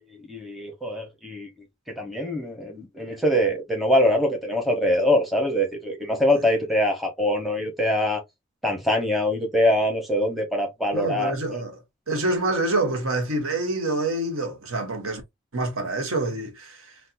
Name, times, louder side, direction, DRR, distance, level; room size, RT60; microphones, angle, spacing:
voice 1, 0.0-1.5 1.9-8.2 8.6-11.3, left 1 dB, ahead, 0.8 m, -23 dB
voice 2, 10.9-15.2 15.5-16.9, right 2 dB, 85° right, 1.0 m, -27 dB
4.2 x 2.0 x 2.5 m
head